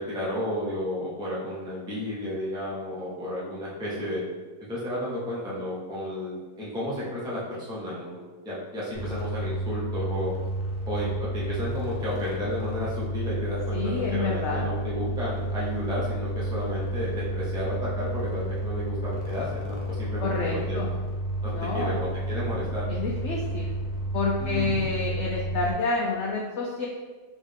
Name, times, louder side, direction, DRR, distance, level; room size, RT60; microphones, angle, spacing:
voice 1, 0.0-4.2 4.7-10.3 10.9-20.8 21.4-22.8 24.4-24.8, equal, 5° right, -7 dB, 0.4 m, -32 dB
sound 1, 8.9-25.7, right 1 dB, 90° left, 1.4 m, -31 dB
voice 2, 13.7-14.6 20.2-20.9 21.5-22.0 22.9-23.7 24.1-26.9, left 3 dB, 65° left, -2 dB, 0.7 m, -28 dB
3.7 x 3.1 x 3.5 m, 1.3 s
omnidirectional pair, 1.6 m